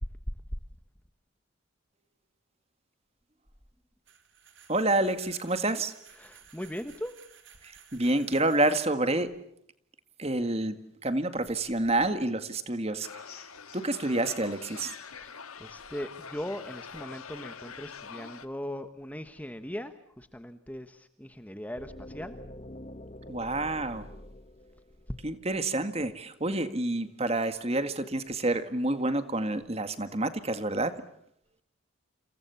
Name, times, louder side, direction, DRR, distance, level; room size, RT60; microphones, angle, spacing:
sound 1, 4.1-9.2, right 8 dB, 55° right, 4.1 m, -56 dB
voice 1, 4.7-5.9 7.6-9.3 10.2-13.4 13.7-15.0 23.3-24.1 25.2-31.0, right 2 dB, 30° right, 10 dB, 1.9 m, -28 dB
voice 2, 6.2-7.1 15.1-15.3 15.6-22.3 25.1-25.2, equal, 5° left, 9 dB, 1.2 m, -39 dB
sound 2, 13.0-18.5, left 6 dB, 85° left, 1.8 m, -45 dB
sound 3, 21.8-25.7, left 1 dB, 30° left, 1.2 m, -46 dB
29.5 x 27.5 x 7.1 m, 0.72 s
head